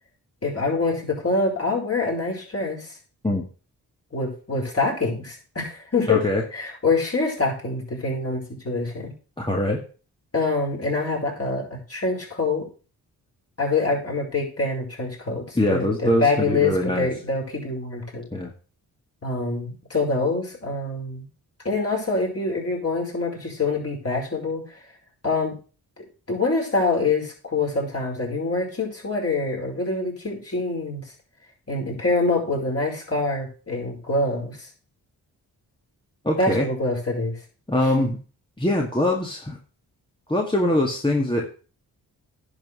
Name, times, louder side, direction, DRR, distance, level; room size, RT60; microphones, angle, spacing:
voice 1, 0.4-2.9 4.1-6.2 6.5-9.1 10.3-12.7 13.6-18.3 19.2-21.3 21.6-24.8 25.2-25.6 26.0-31.0 31.7-34.6 36.4-37.4, left 3 dB, 35° left, 0 dB, 5.0 m, -25 dB
voice 2, 6.1-6.4 9.4-9.8 15.6-17.1 18.3-18.5 36.2-36.7 37.7-38.2 38.6-39.6 40.3-41.5, left 1 dB, 10° left, 0 dB, 1.8 m, -22 dB
10.5 x 4.8 x 6.2 m, 0.37 s
supercardioid pair, 45°, 40 cm